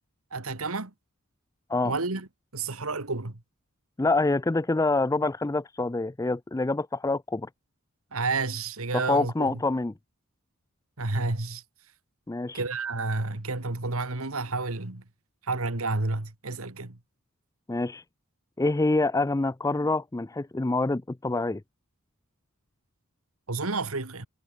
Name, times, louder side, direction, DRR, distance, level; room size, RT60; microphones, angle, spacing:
voice 1, 0.3-0.9 1.8-2.3 2.5-3.4 8.1-9.6 11.0-11.6 12.5-15.0 15.4-17.0 23.5-24.3, right 3 dB, 75° right, 2.0 m, -30 dB
voice 2, 4.0-7.5 8.9-9.9 12.3-12.6 17.7-18.0 18.6-21.6, left 2 dB, 15° left, 0.4 m, -26 dB
head